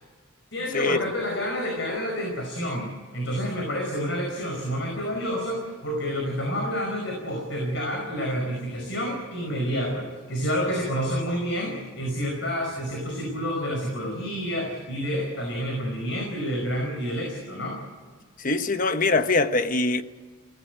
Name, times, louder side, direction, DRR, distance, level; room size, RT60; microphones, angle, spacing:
voice 1, 0.5-17.8, equal, 65° left, 5.2 m, -29 dB
voice 2, 18.4-20.0, left 3 dB, 45° left, 1.1 m, -23 dB
23.5 x 18.0 x 8.2 m
head